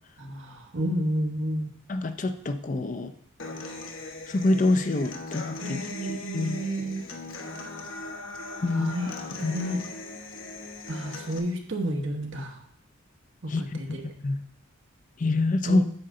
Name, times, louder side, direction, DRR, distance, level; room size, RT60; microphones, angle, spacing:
voice 1, 0.2-1.8 5.6-7.0 8.7-9.8 10.9-12.6 13.4-14.0 15.6-15.9, right 1 dB, 65° right, 3 dB, 1.2 m, -31 dB
voice 2, 1.9-3.1 4.3-6.6 8.6-8.9 9.4-9.5 13.5-13.6 14.2-14.4 15.2-15.8, left 2 dB, 40° left, 10 dB, 0.5 m, -26 dB
Human voice / Acoustic guitar, 3.4-11.4, left 3 dB, 75° left, 1.1 m, -39 dB
8.7 x 6.7 x 3.8 m, 0.64 s
head